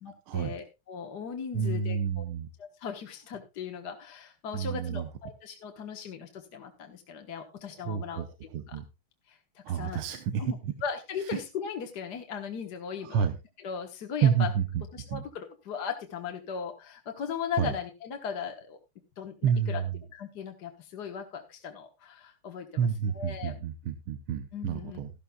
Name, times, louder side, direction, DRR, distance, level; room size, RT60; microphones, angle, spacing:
voice 1, 0.0-2.2 2.6-8.2 8.7-8.8 9.3-10.0 10.4-13.3 13.6-14.5 14.9-18.8 19.2-19.8 20.1-23.6 24.5-25.0, left 7 dB, 55° left, 4 dB, 1.7 m, -38 dB
voice 2, 1.5-2.5 4.5-5.1 7.9-8.3 8.5-8.8 9.6-10.7 13.0-13.4 14.2-14.6 15.1-15.2 17.6-17.7 19.4-19.8 22.8-25.1, right 7 dB, 85° right, 9 dB, 1.7 m, -29 dB
13.5 x 12.5 x 2.3 m, 0.25 s
omnidirectional pair, 2.3 m